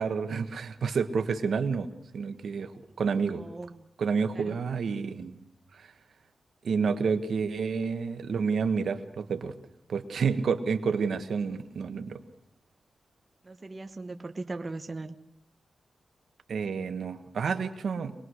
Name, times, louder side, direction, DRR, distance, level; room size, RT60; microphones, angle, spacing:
voice 1, 0.0-2.7 3.0-3.4 4.0-5.4 5.8-5.9 6.6-9.5 9.9-12.2 16.5-18.1, right 5 dB, 75° right, 8 dB, 1.4 m, -29 dB
voice 2, 3.3-3.9 4.3-4.6 13.4-15.2, right 3 dB, 30° right, 6 dB, 1.2 m, -39 dB
24.5 x 20.5 x 6.4 m, 0.75 s
wide cardioid pair, 125°, 0 cm